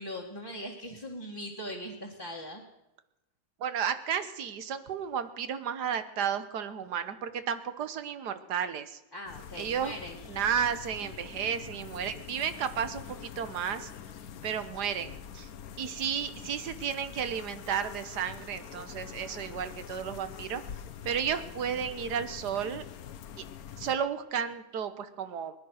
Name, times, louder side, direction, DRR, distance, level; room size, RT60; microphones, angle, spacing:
voice 1, 0.0-2.6 9.1-10.2, equal, 15° left, -3 dB, 1.7 m, -40 dB
voice 2, 3.6-9.0 9.6-9.9 10.3-13.9 14.4-15.5 15.8-20.6 21.0-22.8 23.4-23.5 23.8-25.5, right 8 dB, 90° right, 12 dB, 1.6 m, -33 dB
sound 1, 9.3-24.0, left 8 dB, 65° left, 1.3 m, -45 dB
20.5 x 10.5 x 6.4 m, 0.95 s
omnidirectional pair, 1.7 m